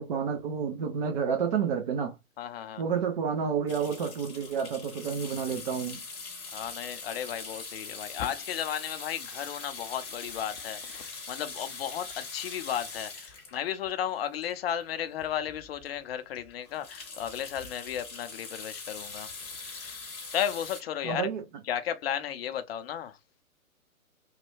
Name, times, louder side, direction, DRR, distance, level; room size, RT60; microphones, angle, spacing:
voice 1, 0.0-2.2 2.8-6.0 21.0-21.4, right 7 dB, 35° right, 0.5 m, -30 dB
voice 2, 2.4-2.8 6.5-19.3 19.7-20.0 20.3-21.3 21.7-23.2, left 9 dB, 45° left, 0.5 m, -34 dB
sound 1, 3.7-15.0 15.5-15.6 15.8-16.0 16.3-20.8, left 4 dB, 15° left, 0.8 m, -42 dB
3.1 x 2.2 x 3.1 m
hypercardioid pair, 130°, 42 cm